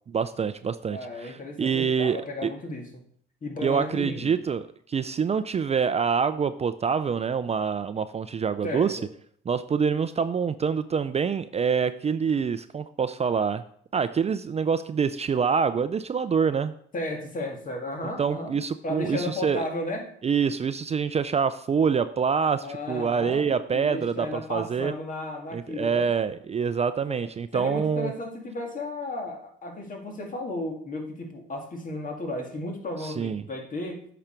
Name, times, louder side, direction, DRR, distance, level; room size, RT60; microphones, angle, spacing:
voice 1, 0.1-2.5 3.6-9.0 9.5-13.6 13.9-16.7 18.2-19.6 20.2-24.9 25.5-28.1 33.0-33.4, right 6 dB, 35° right, 12 dB, 0.4 m, -26 dB
voice 2, 0.9-3.0 3.4-4.4 8.6-9.1 16.9-20.1 22.6-26.1 27.1-27.3 27.5-34.1, left 1 dB, 40° left, 2 dB, 2.1 m, -34 dB
8.6 x 6.0 x 4.4 m, 0.62 s
cardioid pair, 90°, 20 cm